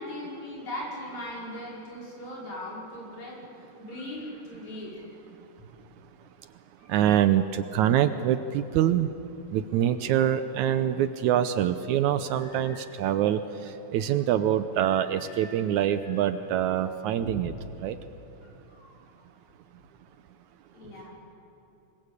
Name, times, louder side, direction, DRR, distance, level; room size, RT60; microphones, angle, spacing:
voice 1, 0.0-3.4 3.8-5.0 5.6-5.7 6.8-7.0 9.8-9.9 12.3-13.0 14.8-15.6 16.0-16.2 17.2-17.4 18.4-19.0 20.7-21.1, left 1 dB, 60° left, -4 dB, 6.9 m, -40 dB
voice 2, 6.9-9.1 9.5-13.4 13.9-17.5 17.8-18.0, right 10 dB, 75° right, 11 dB, 2.0 m, -25 dB
26.0 x 21.0 x 8.3 m, 2.9 s
omnidirectional pair, 3.7 m